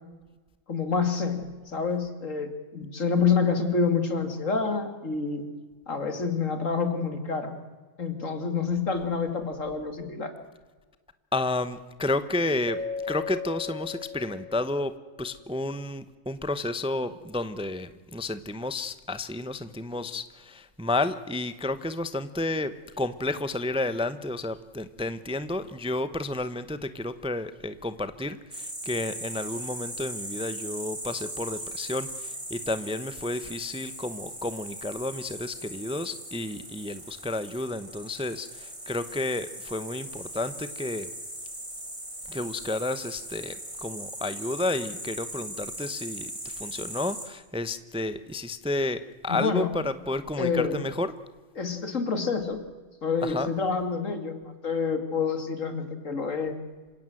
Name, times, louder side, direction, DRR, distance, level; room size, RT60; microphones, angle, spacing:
voice 1, 0.7-5.5 5.9-7.6 8.0-10.3 49.3-49.7 50.4-50.8 51.6-52.6 53.0-56.6, left 5 dB, 75° left, 7 dB, 2.8 m, -28 dB
voice 2, 11.3-12.8 13.1-14.9 15.2-41.1 42.3-51.1 53.2-53.5, left 2 dB, 5° right, 13 dB, 0.7 m, -31 dB
Keyboard (musical), 12.7-15.1, left 5 dB, 60° right, 3.2 m, -36 dB
sound 1, 28.5-47.3, right 1 dB, 25° right, 4.5 m, -39 dB
26.5 x 17.0 x 7.8 m, 1.3 s
omnidirectional pair, 1.4 m